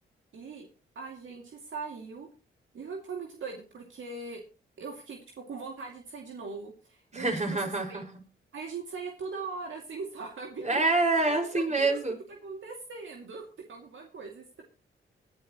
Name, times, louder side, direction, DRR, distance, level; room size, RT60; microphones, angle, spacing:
voice 1, 0.3-0.7 0.9-2.3 2.7-4.4 4.8-7.6 7.9-8.0 8.5-10.8 11.5-12.0 12.3-13.4 13.7-14.6, right 4 dB, 70° right, 1 dB, 2.6 m, -40 dB
voice 2, 7.1-8.0 10.6-12.2, right 3 dB, 35° right, 2 dB, 5.6 m, -26 dB
20.0 x 11.0 x 3.1 m, 0.32 s
cardioid pair, 60°, 21 cm